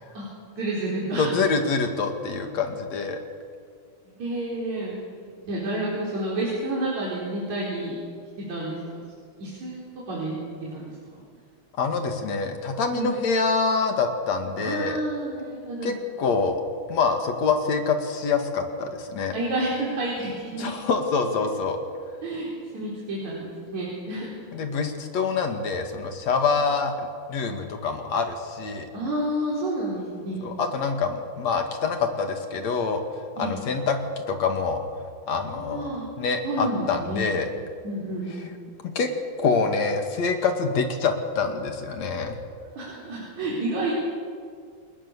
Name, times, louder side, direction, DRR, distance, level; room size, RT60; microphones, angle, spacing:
voice 1, 0.5-1.4 4.2-8.0 8.5-8.8 9.4-9.8 10.1-11.2 12.9-13.2 14.6-15.9 19.3-20.7 22.2-24.4 28.9-30.4 33.4-33.5 35.5-36.0 36.4-37.3 37.8-38.5 42.7-43.9, right 1 dB, 70° right, -5 dB, 6.0 m, -30 dB
voice 2, 1.2-3.2 11.8-15.0 15.8-16.6 16.9-19.4 20.6-21.8 24.5-27.0 27.3-28.9 30.4-33.0 33.4-34.0 34.3-35.9 36.2-37.5 38.8-39.1 39.4-42.4, left 4 dB, 65° left, 5 dB, 3.3 m, -26 dB
28.0 x 20.0 x 7.0 m, 2.1 s
omnidirectional pair, 3.4 m